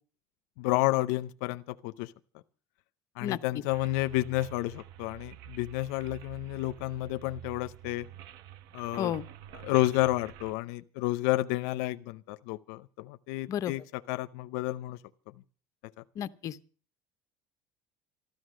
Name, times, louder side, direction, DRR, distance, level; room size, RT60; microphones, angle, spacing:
voice 1, 0.6-2.1 3.2-8.1 8.7-9.1 9.6-13.8 14.1-15.0, left 18 dB, 85° left, 0.6 m, -30 dB
voice 2, 3.2-3.6 9.0-9.2 13.5-13.7 16.2-16.6, left 10 dB, 45° left, 0.8 m, -32 dB
sound 1, 3.7-10.5, right 11 dB, 70° right, 1.2 m, -48 dB
13.5 x 13.0 x 6.3 m
cardioid pair, 125°, 8 cm